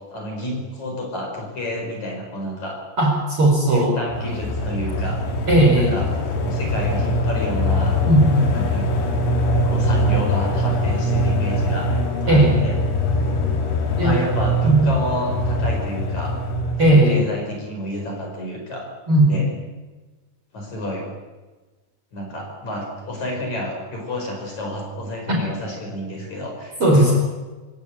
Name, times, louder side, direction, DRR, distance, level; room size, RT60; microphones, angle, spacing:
voice 1, 0.1-2.8 3.7-5.2 5.8-6.1 6.4-8.0 8.5-8.9 9.6-11.9 12.2-12.8 14.0-16.3 16.9-18.9 19.3-19.5 20.5-21.1 22.1-27.1, left 1 dB, 35° left, 1 dB, 6.2 m, -30 dB
voice 2, 3.0-4.0 5.5-6.0 8.1-8.5 12.3-12.5 14.0-14.2 14.6-14.9 16.8-17.2 19.1-19.5 25.3-25.4 26.8-27.1, right 1 dB, 30° right, 0 dB, 5.2 m, -16 dB
sound 1, 4.1-17.2, left 1 dB, 80° left, 5.8 m, -22 dB
26.5 x 16.5 x 8.9 m, 1.2 s
omnidirectional pair, 5.8 m